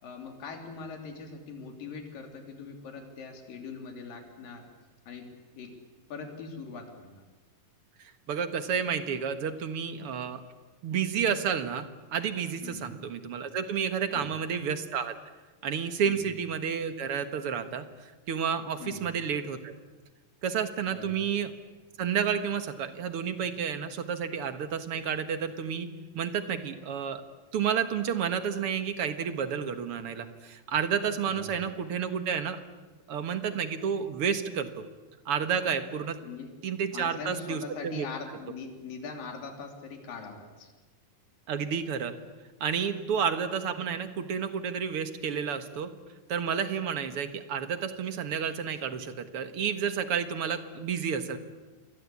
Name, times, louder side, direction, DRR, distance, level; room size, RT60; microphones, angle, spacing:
voice 1, 0.0-4.7 5.1-5.3 5.5-5.7 6.1-7.2 12.6-12.9 14.1-14.4 16.0-16.3 18.8-19.1 20.9-21.3 31.3-31.7 36.2-36.5 36.9-40.7, left 5 dB, 75° left, 4 dB, 4.9 m, -42 dB
voice 2, 8.0-10.4 10.8-15.2 15.6-17.9 18.3-19.7 20.4-21.5 22.0-27.2 27.5-32.6 33.1-34.8 35.3-36.2 36.6-38.1 41.5-42.1 42.6-45.9 46.3-51.4, right 7 dB, 50° right, 9 dB, 1.9 m, -30 dB
28.0 x 22.5 x 8.5 m, 1.3 s
omnidirectional pair, 4.0 m